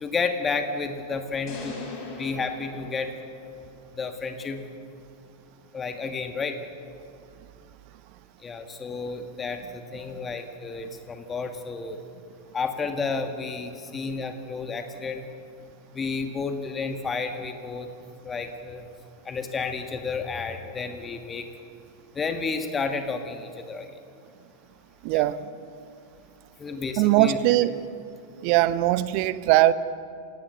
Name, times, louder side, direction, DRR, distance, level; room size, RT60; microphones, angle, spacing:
voice 1, 0.0-1.7 2.2-3.2 3.9-4.7 5.7-6.6 8.4-12.0 12.5-15.3 15.9-17.9 18.2-18.9 19.2-21.5 22.1-24.0 25.1-25.3 26.6-27.4, left 4 dB, 20° left, 6 dB, 1.8 m, -31 dB
sound 1, 1.5-3.8, left 3 dB, 40° left, 7.4 m, -40 dB
voice 2, 25.0-25.4 27.0-27.7 28.4-29.7, right 16 dB, 45° right, 15 dB, 0.9 m, -20 dB
28.0 x 17.5 x 8.1 m, 2.5 s
figure-of-eight pair, 90°, 0 cm